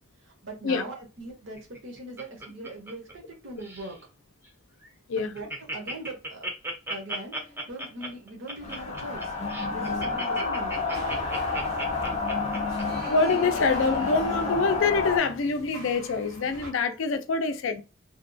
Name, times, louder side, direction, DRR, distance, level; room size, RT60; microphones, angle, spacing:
voice 1, 0.4-4.0 5.1-5.5 5.7-6.4 6.9-7.3 7.7-9.3 9.7-11.0, right 2 dB, 60° right, 0.7 m, -40 dB
Laughter, 1.6-3.3 3.6-4.0 4.4-4.5 4.8-4.9 5.2-13.6 14.1-14.2, right 1 dB, 10° right, 0.5 m, -36 dB
sound 1, 8.6-15.2, left 4 dB, 30° left, 0.7 m, -29 dB
sound 2, 10.9-16.7, right 1 dB, 85° right, 1.0 m, -42 dB
voice 2, 13.1-17.8, left 4 dB, 65° left, 0.4 m, -25 dB
2.8 x 2.2 x 2.5 m
head